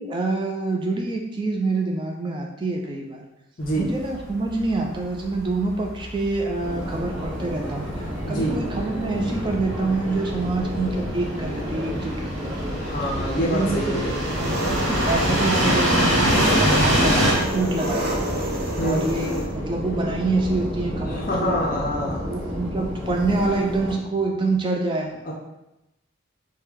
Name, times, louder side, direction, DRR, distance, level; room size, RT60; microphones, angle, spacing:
voice 1, 0.0-3.2 3.8-7.9 8.3-12.8 13.3-14.0 14.4-18.2 18.8-21.6 22.2-25.3, right 3 dB, 20° right, 1 dB, 0.3 m, -26 dB
sound 1, 3.6-17.3, equal, 60° right, 1.1 m, -25 dB
Subway metro underground, 6.6-23.9, equal, 5° right, 1.0 m, -31 dB
voice 2, 8.3-8.6 12.8-14.2 18.8-19.1 21.1-22.2 25.2-25.3, equal, 40° left, -2 dB, 0.5 m, -26 dB
Engine, 14.2-19.5, right 1 dB, 45° right, 0.7 m, -30 dB
4.7 x 2.2 x 3.4 m, 0.92 s
head